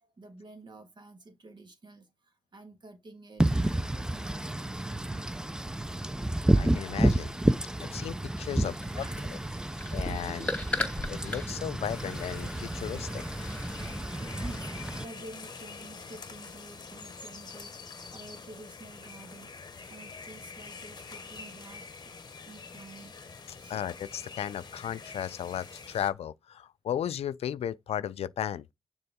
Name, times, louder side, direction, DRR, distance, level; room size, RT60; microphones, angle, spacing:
voice 1, 0.0-5.3 8.6-9.9 13.9-19.5 19.9-23.1 23.6-23.8, right 2 dB, 50° right, 1.7 m, -50 dB
Wind / Rain, 3.4-15.0, right 1 dB, 5° right, 0.5 m, -30 dB
voice 2, 6.6-7.4 7.8-8.7 9.9-10.5 11.1-13.2 23.7-28.6, left 10 dB, 80° left, 0.4 m, -35 dB
sound 1, 8.7-14.0, left 2 dB, 10° left, 2.3 m, -38 dB
sound 2, 11.8-26.1, left 4 dB, 40° left, 0.9 m, -46 dB
6.8 x 4.4 x 3.6 m
cardioid pair, 80°, 10 cm